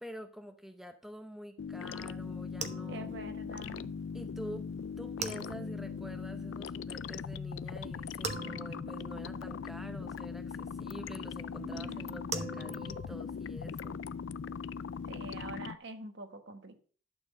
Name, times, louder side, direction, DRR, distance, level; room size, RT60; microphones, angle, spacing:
voice 1, 0.0-3.1 4.1-4.7 5.0-14.0, equal, ahead, 7 dB, 0.7 m, -47 dB
sound 1, 1.6-15.8, left 6 dB, 65° left, 0.3 m, -40 dB
sound 2, 2.0-15.5, right 4 dB, 35° right, 0.9 m, -46 dB
voice 2, 2.9-3.9 11.6-12.2 15.1-16.8, right 2 dB, 60° right, 7 dB, 1.4 m, -45 dB
11.5 x 4.4 x 7.3 m, 0.42 s
head